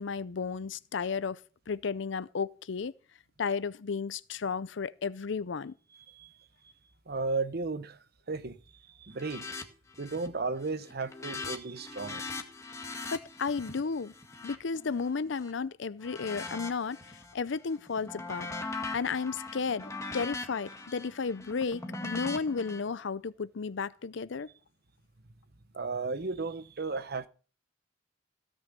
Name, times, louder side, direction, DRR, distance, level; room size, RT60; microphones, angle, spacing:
voice 1, 0.0-1.4 1.7-2.9 3.4-5.7 13.1-14.1 14.4-18.5 18.9-24.5, left 5 dB, 70° left, 0.6 m, -33 dB
voice 2, 7.1-8.0 8.3-9.5 10.0-12.2 25.7-27.3, right 3 dB, 55° right, 1.0 m, -34 dB
sound 1, 9.2-9.6 9.9-10.4 10.7-15.5 16.0-17.3 17.7-22.8, left 3 dB, 15° left, 1.8 m, -41 dB
17.0 x 6.3 x 6.8 m
head